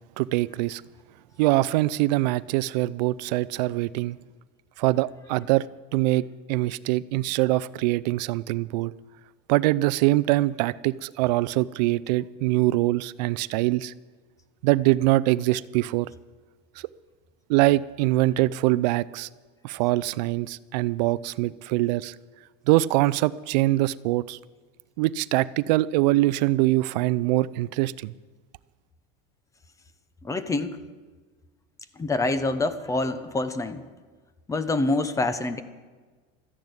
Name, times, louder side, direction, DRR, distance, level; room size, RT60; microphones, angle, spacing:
voice 1, 0.2-0.8 1.4-4.2 4.8-5.6 5.9-8.9 9.5-13.9 14.6-16.1 17.5-19.3 19.6-22.2 22.7-24.4 25.0-28.1, right 18 dB, 80° right, 18 dB, 0.5 m, -23 dB
voice 2, 30.2-30.8 32.0-33.9 34.5-35.6, left 2 dB, 15° left, 12 dB, 0.9 m, -26 dB
13.5 x 10.5 x 8.1 m, 1.4 s
supercardioid pair, 130°, 21 cm